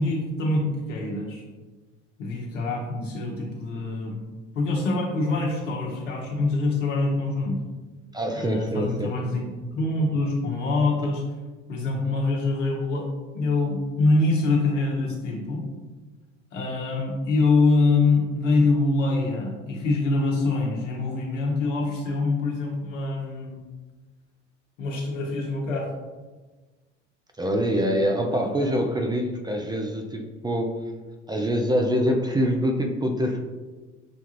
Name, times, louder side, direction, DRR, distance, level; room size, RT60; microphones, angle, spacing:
voice 1, 0.0-1.4 2.2-4.2 4.5-7.6 8.3-11.2 11.7-13.1 13.3-15.7 16.5-23.6 24.8-25.9 28.3-28.5, left 3 dB, 80° left, -1 dB, 1.2 m, -25 dB
voice 2, 8.1-9.1 27.4-30.8 31.3-33.4, equal, 10° right, 2 dB, 0.4 m, -25 dB
6.8 x 2.4 x 2.9 m, 1.3 s
hypercardioid pair, 70°, 37 cm